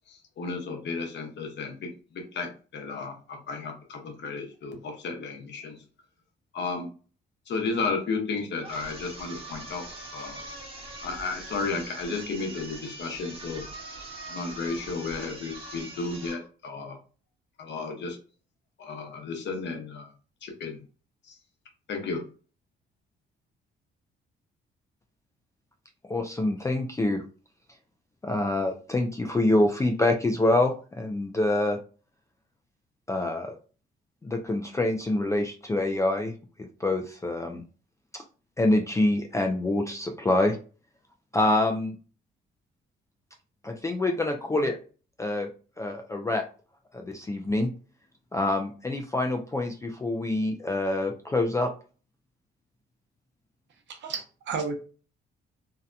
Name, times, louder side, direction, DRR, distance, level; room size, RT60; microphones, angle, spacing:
voice 1, 0.1-5.8 6.5-6.9 7.5-10.4 11.0-14.0 14.3-17.0 17.6-18.2 18.8-20.1 20.4-20.8 21.2-21.3 21.9-22.2, left 4 dB, 60° left, 3 dB, 0.8 m, -33 dB
sound 1, 8.6-16.5, right 2 dB, 30° right, 1.0 m, -42 dB
voice 2, 26.1-27.2 28.2-31.8 33.1-33.6 34.2-36.3 36.6-37.6 38.1-38.2 38.6-40.6 41.3-41.9 43.6-44.8 45.2-45.5 45.8-46.4 46.9-47.7 48.3-51.7, left 2 dB, 15° left, 3 dB, 0.3 m, -26 dB
voice 3, 53.9-54.8, right 5 dB, 65° right, 5 dB, 0.7 m, -32 dB
2.7 x 2.1 x 2.4 m, 0.36 s
cardioid pair, 90°, 20 cm